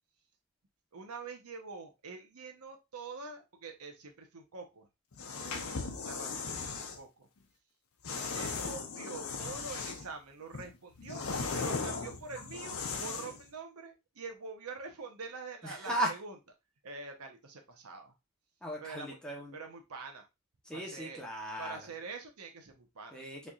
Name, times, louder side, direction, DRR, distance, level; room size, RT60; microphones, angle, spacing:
voice 1, 0.9-4.9 5.2-5.7 6.0-7.3 8.4-16.4 16.8-18.1 18.8-19.2 19.5-20.3 20.7-21.2 21.6-23.2, right 4 dB, 85° right, 4 dB, 0.8 m, -45 dB
sound 1, 5.1-7.0 8.0-10.1 10.5-13.4, left 4 dB, 75° left, 0.7 m, -37 dB
voice 2, 15.6-16.1 18.6-19.6 20.7-21.8 23.1-23.5, right 1 dB, 5° left, -2 dB, 0.9 m, -36 dB
4.1 x 3.3 x 2.4 m, 0.24 s
head